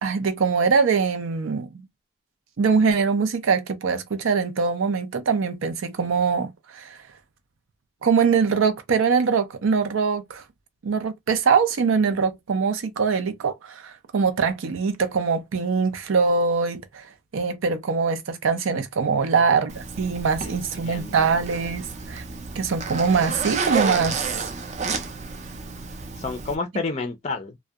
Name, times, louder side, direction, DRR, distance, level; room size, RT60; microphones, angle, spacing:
voice 1, 0.0-1.8 2.6-7.0 8.0-10.4 10.8-17.1 17.3-22.2 22.6-24.3, right 5 dB, 90° right, 0.5 m, -23 dB
Zipper (clothing), 19.7-26.6, right 4 dB, 35° right, 0.4 m, -31 dB
voice 2, 20.4-21.3 26.2-27.6, left 3 dB, 35° left, 0.4 m, -31 dB
2.6 x 2.1 x 2.3 m
head